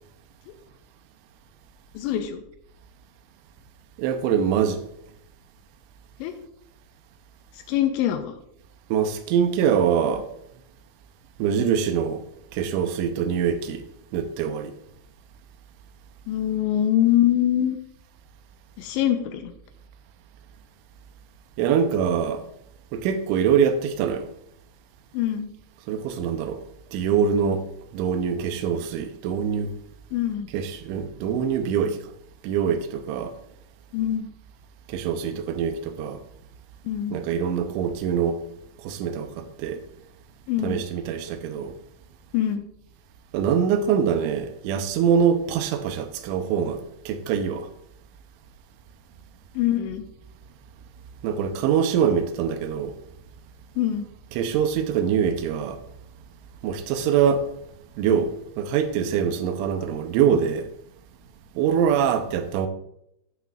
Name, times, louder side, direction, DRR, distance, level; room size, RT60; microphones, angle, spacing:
voice 1, 1.9-2.4 6.2-6.3 7.5-8.3 16.3-17.8 18.8-19.5 25.1-25.5 30.1-30.5 33.9-34.3 36.8-37.2 40.5-40.8 42.3-42.6 49.5-50.0 53.8-54.1, left 11 dB, 90° left, 2.6 m, -24 dB
voice 2, 4.0-4.8 8.9-10.3 11.4-12.2 12.5-13.9 14.1-14.7 21.6-22.5 22.9-24.3 25.9-26.6 26.9-27.7 27.9-29.7 30.5-32.1 32.4-33.3 34.9-36.2 37.1-38.4 38.8-39.8 40.6-41.8 43.3-47.7 51.2-53.0 54.3-55.8 56.6-57.5 58.0-60.7 61.6-62.7, right 7 dB, 80° right, 2.9 m, -24 dB
14.5 x 6.0 x 2.4 m
omnidirectional pair, 5.8 m